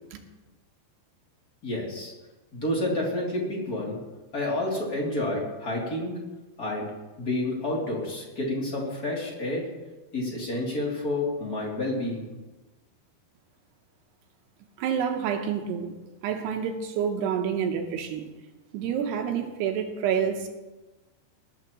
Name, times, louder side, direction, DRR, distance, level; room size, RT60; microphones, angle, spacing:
voice 1, 1.6-2.1 2.5-4.0 4.3-6.1 6.6-6.9 7.2-9.7 10.1-12.3, left 1 dB, 25° left, -3 dB, 2.5 m, -29 dB
voice 2, 14.8-15.9 16.2-18.3 18.7-20.5, right 7 dB, 75° right, 5 dB, 2.8 m, -28 dB
20.0 x 12.0 x 3.0 m, 1.1 s
omnidirectional pair, 5.3 m